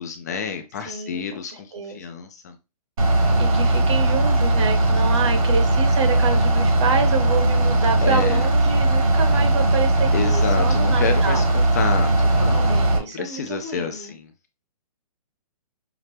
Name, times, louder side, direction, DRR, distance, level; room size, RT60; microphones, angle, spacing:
voice 1, 0.0-2.6 8.0-8.5 10.1-14.3, left 6 dB, 25° left, 6 dB, 0.4 m, -29 dB
voice 2, 0.9-1.2 1.7-2.1 3.4-11.4 12.7-14.1, right 5 dB, 50° right, 7 dB, 1.0 m, -28 dB
Bus / Idling, 3.0-13.0, right 2 dB, 65° right, 1.5 m, -19 dB
5.8 x 2.0 x 3.2 m, 0.27 s
hypercardioid pair, 165°, 20 cm